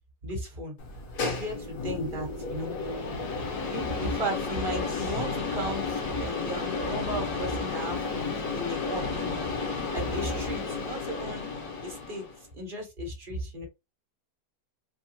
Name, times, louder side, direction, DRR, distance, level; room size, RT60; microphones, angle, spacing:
voice 1, 0.2-0.8 1.2-2.7 3.1-3.3 3.7-9.5 9.9-11.5 11.8-12.2 12.5-13.7, right 1 dB, 35° right, 2 dB, 1.3 m, -35 dB
sound 1, 0.8-12.4, left 4 dB, 70° left, 1.6 m, -32 dB
3.5 x 2.3 x 2.8 m, 0.24 s
omnidirectional pair, 1.8 m